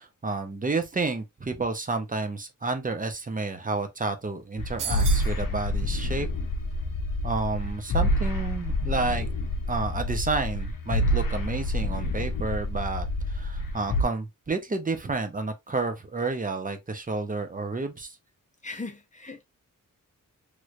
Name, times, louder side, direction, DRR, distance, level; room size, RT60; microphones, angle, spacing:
voice 1, 0.0-6.3 7.2-9.3 9.7-18.2, right 3 dB, 25° right, 0.6 m, -30 dB
sound 1, 4.6-14.0, left 1 dB, 80° left, 0.7 m, -28 dB
sound 2, 4.8-5.4, right 7 dB, 70° right, 0.6 m, -34 dB
voice 2, 18.6-19.4, left 3 dB, 20° left, 0.7 m, -38 dB
3.1 x 3.0 x 2.4 m
wide cardioid pair, 150°, 33 cm